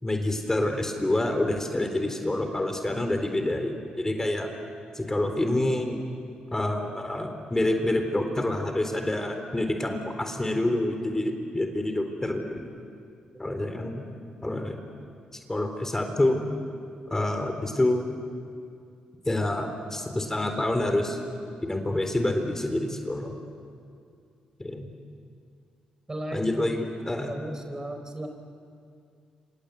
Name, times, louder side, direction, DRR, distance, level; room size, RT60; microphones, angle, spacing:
voice 1, 0.0-4.5 4.9-6.0 6.5-12.6 13.4-14.0 14.4-14.8 15.5-16.4 17.1-18.0 19.3-21.2 21.7-23.3 24.6-24.9 26.3-27.3, left 1 dB, 15° left, 5 dB, 3.8 m, -27 dB
voice 2, 26.1-26.7 27.3-28.4, right 1 dB, 25° right, 5 dB, 4.3 m, -36 dB
27.5 x 26.5 x 8.2 m, 2.4 s
supercardioid pair, 55°, 3 cm